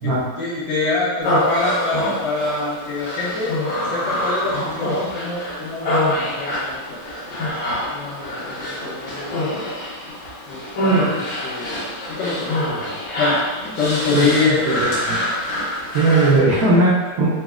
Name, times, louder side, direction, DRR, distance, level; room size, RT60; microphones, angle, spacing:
voice 1, 0.4-3.5 3.9-7.0 7.7-9.5 10.5-12.8 13.2-13.4 13.8-14.7, left 3 dB, 90° left, -9 dB, 0.7 m, -25 dB
Human voice, 1.2-16.4, equal, 65° left, 1.7 m, -25 dB
voice 2, 14.1-15.2 15.9-17.3, right 2 dB, 85° right, -8 dB, 0.8 m, -18 dB
4.0 x 2.0 x 2.3 m, 1.2 s
omnidirectional pair, 2.3 m